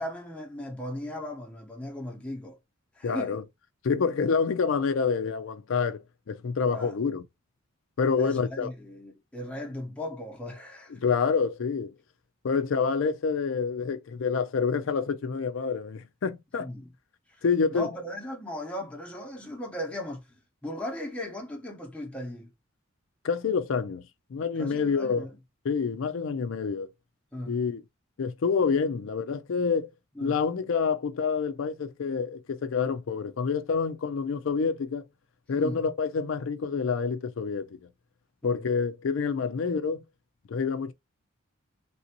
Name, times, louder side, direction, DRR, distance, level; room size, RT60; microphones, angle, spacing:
voice 1, 0.0-2.6 2.9-3.4 6.7-7.0 8.2-11.0 16.6-16.9 17.3-17.4 17.7-22.5 24.6-25.4 27.3-27.6 30.1-30.4 35.6-35.8 38.4-38.6, left 1 dB, 5° left, 0.8 m, -37 dB
voice 2, 3.0-3.4 3.8-6.0 6.3-7.2 8.0-8.7 11.0-11.9 12.4-16.7 17.4-17.9 23.2-24.0 24.3-25.3 25.6-26.9 27.5-27.8 28.2-29.9 30.2-35.0 35.5-37.8 38.4-40.0 40.5-40.9, left 5 dB, 70° left, 0.4 m, -27 dB
3.3 x 2.6 x 2.8 m
head